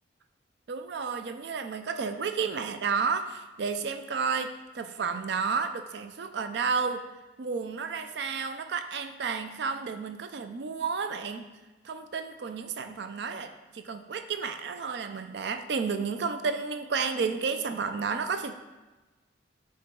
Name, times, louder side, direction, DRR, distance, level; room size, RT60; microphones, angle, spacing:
voice 1, 0.7-7.0 7.4-11.5 11.8-18.5, right 5 dB, 60° right, 8 dB, 0.4 m, -31 dB
10.5 x 3.8 x 3.7 m, 1.2 s
head